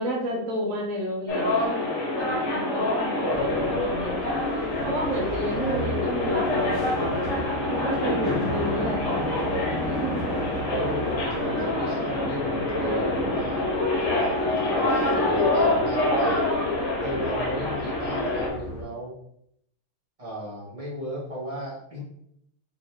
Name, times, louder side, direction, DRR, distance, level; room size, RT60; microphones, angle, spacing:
voice 1, 0.0-1.9 2.2-7.2 7.7-9.2 9.8-10.2, equal, 85° right, -1 dB, 0.7 m, -31 dB
sound 1, 1.3-18.5, left 2 dB, 85° left, 2.3 m, -26 dB
sound 2, 3.3-18.8, left 1 dB, 55° left, 1.7 m, -35 dB
voice 2, 10.7-13.6 14.1-16.4 17.0-19.1 20.2-22.0, right 1 dB, 40° right, -5 dB, 0.5 m, -35 dB
5.1 x 2.3 x 3.3 m, 0.73 s
omnidirectional pair, 2.3 m